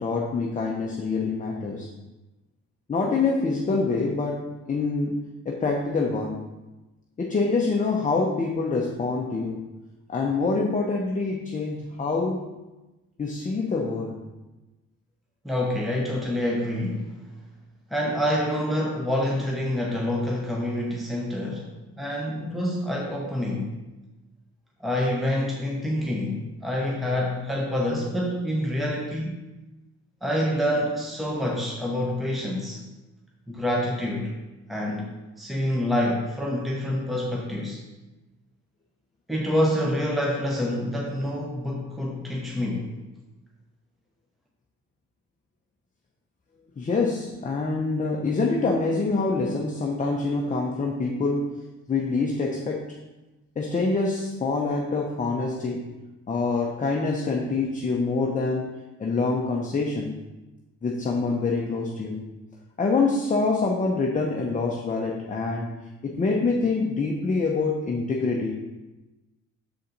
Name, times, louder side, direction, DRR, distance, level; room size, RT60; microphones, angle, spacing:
voice 1, 0.0-1.9 2.9-4.4 4.7-6.5 7.2-9.6 10.1-12.5 13.2-14.2 46.8-51.5 51.9-52.9 53.6-55.9 56.3-58.7 59.0-60.2 60.8-62.2 62.8-68.6, left 3 dB, 25° left, -1 dB, 0.7 m, -26 dB
voice 2, 15.4-17.2 17.9-21.7 22.0-23.7 24.8-29.4 30.2-32.8 33.5-34.3 34.7-35.1 35.4-37.8 39.3-42.9, left 1 dB, ahead, -2 dB, 0.9 m, -27 dB
6.8 x 4.1 x 4.0 m, 1.1 s
cardioid pair, 90°, 30 cm